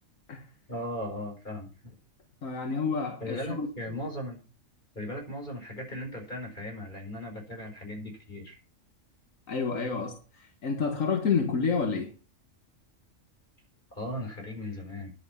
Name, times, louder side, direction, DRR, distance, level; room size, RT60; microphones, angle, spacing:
voice 1, 0.7-2.0 3.2-4.4 4.9-8.6 13.9-15.1, left 1 dB, 35° left, 4.8 m, -37 dB
voice 2, 2.4-3.7 9.5-12.1, left 5 dB, 80° left, 1.9 m, -29 dB
10.5 x 8.8 x 5.7 m
omnidirectional pair, 1.4 m